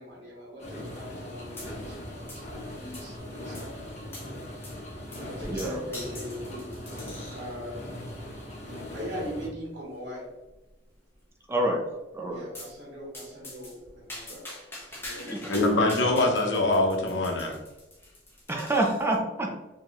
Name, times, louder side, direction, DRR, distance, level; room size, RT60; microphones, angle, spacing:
voice 1, 0.0-4.3 5.1-6.7 7.3-7.9 8.9-10.3 12.3-14.7 15.0-15.8, equal, 60° right, -6 dB, 1.4 m, -40 dB
sound 1, 0.6-9.5, left 1 dB, 40° left, 0.9 m, -40 dB
sound 2, 1.6-2.0 2.3-3.2 3.5-3.7 4.1-4.3 4.6-4.8 5.1-7.5 8.1-8.4 9.1-9.2 9.5-9.6 9.9-10.0 10.4-10.9 12.5-12.8 13.1-19.2, left 1 dB, 15° left, 0.8 m, -44 dB
voice 2, 5.5-5.8 11.5-11.8 12.1-12.4 15.3-15.4 15.7-15.8 17.2-17.3 18.5-19.6, right 1 dB, 15° right, 1 dB, 0.6 m, -27 dB
voice 3, 15.1-17.5, left 2 dB, 80° left, 1 dB, 0.8 m, -24 dB
4.9 x 2.9 x 2.4 m, 1.1 s
head